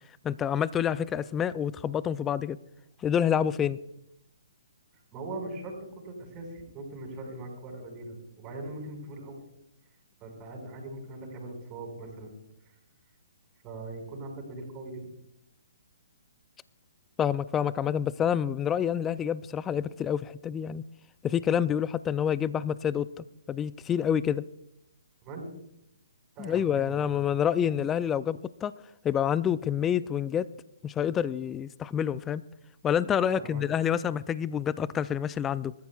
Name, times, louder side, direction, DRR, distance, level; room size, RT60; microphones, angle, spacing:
voice 1, 0.2-2.6 3.0-3.8 17.2-20.8 21.2-23.1 23.5-24.4 26.4-28.7 29.0-30.5 30.8-32.4 32.8-35.7, left 8 dB, 15° left, 18 dB, 0.4 m, -27 dB
voice 2, 5.1-5.8 6.0-9.4 10.2-12.3 13.6-15.1 25.2-25.5 26.4-27.2 33.2-33.6, right 2 dB, 25° right, 2 dB, 5.4 m, -40 dB
26.5 x 14.0 x 2.4 m, 0.80 s
hypercardioid pair, 135°, 0 cm